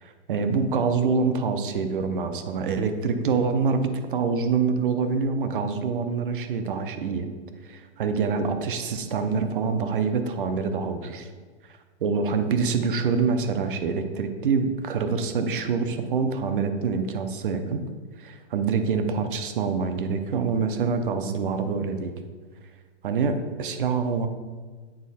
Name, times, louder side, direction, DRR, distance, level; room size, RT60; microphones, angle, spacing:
voice 1, 0.0-7.3 7.6-11.3 11.7-17.8 18.2-22.1 23.0-24.3, right 5 dB, 45° right, 8 dB, 0.7 m, -26 dB
8.6 x 4.1 x 4.2 m, 1.4 s
hypercardioid pair, 175°, 36 cm